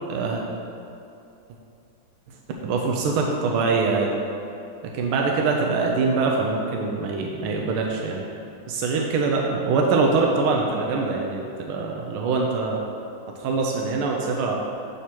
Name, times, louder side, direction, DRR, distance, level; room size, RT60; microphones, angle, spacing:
voice 1, 0.1-0.4 2.6-4.1 4.9-8.2 8.7-12.8 13.4-14.6, right 4 dB, 85° right, 0 dB, 1.5 m, -23 dB
8.1 x 2.9 x 6.0 m, 2.6 s
omnidirectional pair, 2.3 m